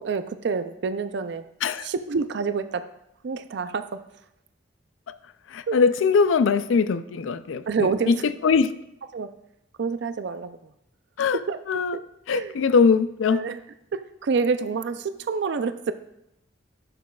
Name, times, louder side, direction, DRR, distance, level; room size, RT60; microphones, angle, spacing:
voice 1, 0.0-1.4 1.8-2.9 3.2-4.0 5.7-5.8 7.7-8.2 9.1-9.3 9.8-10.6 11.3-12.0 12.3-12.6 13.3-13.6 13.9-15.9, right 5 dB, 60° right, 0.4 m, -28 dB
voice 2, 5.5-7.6 8.1-8.2 8.4-8.7 11.2-11.4 11.7-12.0 12.3-13.4, left 5 dB, 90° left, 0.4 m, -21 dB
10.5 x 7.0 x 2.3 m
head